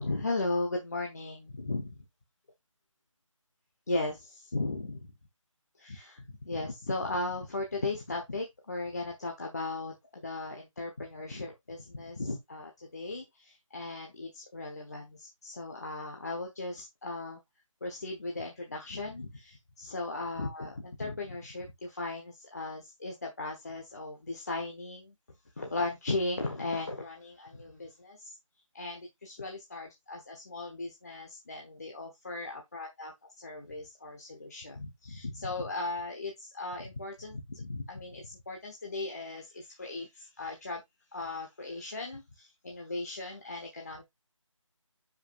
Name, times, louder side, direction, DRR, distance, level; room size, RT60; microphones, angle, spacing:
voice 1, 0.0-2.0 3.9-5.1 5.8-17.4 17.8-25.1 25.6-28.3 28.7-40.8 41.1-44.0, left 2 dB, 30° left, 1.2 m, -37 dB
11.0 x 5.4 x 2.5 m
figure-of-eight pair, 175°, 17 cm